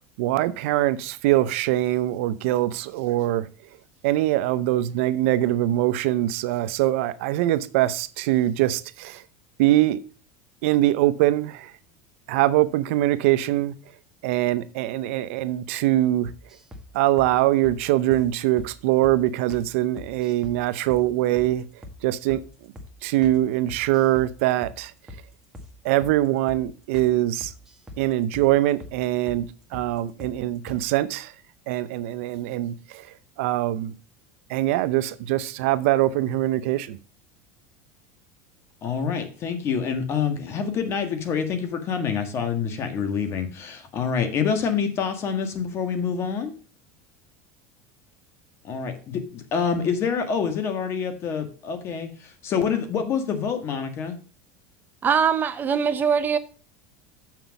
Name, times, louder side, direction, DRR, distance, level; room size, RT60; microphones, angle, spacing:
voice 1, 0.2-3.5 4.0-9.2 9.6-10.0 10.6-11.7 12.3-13.7 14.2-16.3 16.9-21.6 22.0-22.4 23.0-24.9 25.8-27.5 28.0-31.3 31.7-33.9 34.5-37.0, right 15 dB, 75° right, 0.6 m, -23 dB
sound 1, 16.2-16.9 17.2-17.3 17.6-17.8 18.1-18.3 18.6-18.7 19.0-19.2 19.5-19.7 20.0-20.6 20.9-21.1 21.4-21.5 21.8-22.0 22.3-22.5 22.8-22.9 23.2-23.4 23.7-24.3 24.6-24.8 25.1-25.2 25.5-25.7 26.0-26.2 26.5-26.6 26.9-27.1 27.4-28.0 28.3-28.5 28.8-29.0 29.3-29.4 29.7-29.9 30.2-30.4 30.7-30.8, left 1 dB, 10° right, 1.4 m, -41 dB
voice 2, 38.8-46.5 48.6-54.2, left 6 dB, 40° left, 1.5 m, -27 dB
voice 3, 55.0-56.4, right 7 dB, 25° right, 0.5 m, -22 dB
7.0 x 6.0 x 5.1 m
supercardioid pair, 135°, 7 cm